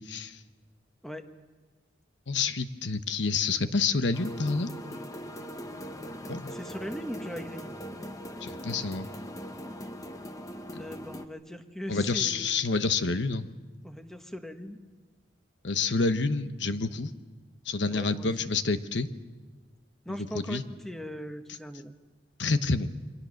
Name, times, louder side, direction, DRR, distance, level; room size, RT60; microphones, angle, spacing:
voice 1, 0.1-0.4 2.3-4.7 6.3-6.5 8.4-9.1 11.9-13.5 15.6-17.1 17.7-19.1 20.3-20.6 22.4-23.0, left 4 dB, 75° left, 10 dB, 1.1 m, -28 dB
sound 1, 4.1-11.3, equal, 20° left, 1.0 m, -40 dB
voice 2, 6.5-7.7 10.8-12.7 13.8-14.8 17.9-18.3 20.0-21.9, equal, ahead, 7 dB, 1.3 m, -39 dB
29.0 x 23.5 x 6.4 m, 1.3 s
head